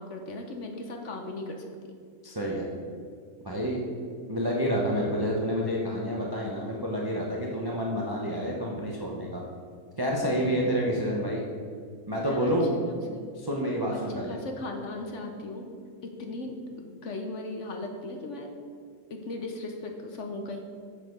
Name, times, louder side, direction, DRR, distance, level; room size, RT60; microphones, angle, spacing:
voice 1, 0.0-2.0 10.2-10.6 12.1-12.5 12.9-13.3 13.9-14.0 14.3-15.7 16.0-18.5 19.1-20.6, left 2 dB, 55° left, 3 dB, 1.0 m, -38 dB
voice 2, 2.2-2.7 3.4-3.8 4.3-9.5 10.0-11.4 12.1-12.7 13.3-14.4, equal, 20° right, -2 dB, 0.7 m, -28 dB
7.1 x 6.7 x 5.3 m, 2.2 s
omnidirectional pair, 1.7 m